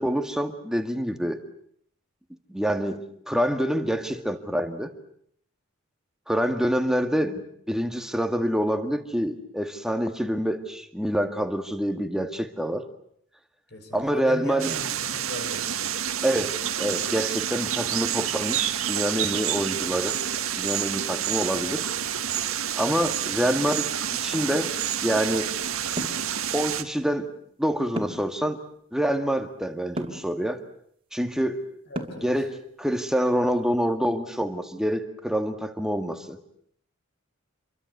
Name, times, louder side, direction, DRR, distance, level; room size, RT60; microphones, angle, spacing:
voice 1, 0.0-1.4 2.5-4.9 6.3-7.4 7.7-12.9 13.9-14.7 16.2-20.2 20.5-21.8 22.8-23.9 24.2-24.7 25.0-25.5 26.5-27.3 27.6-28.6 28.9-30.6 31.1-31.7 32.2-36.4, equal, 5° right, 7 dB, 2.0 m, -26 dB
voice 2, 13.7-15.7 31.9-32.4, equal, 50° left, 6 dB, 6.5 m, -38 dB
sound 1, 14.6-26.8, right 9 dB, 75° right, 1.9 m, -28 dB
sound 2, 26.0-26.3 28.0-28.3 30.0-30.3 31.9-32.3, right 1 dB, 25° right, 3.0 m, -32 dB
27.5 x 23.5 x 8.0 m, 0.66 s
head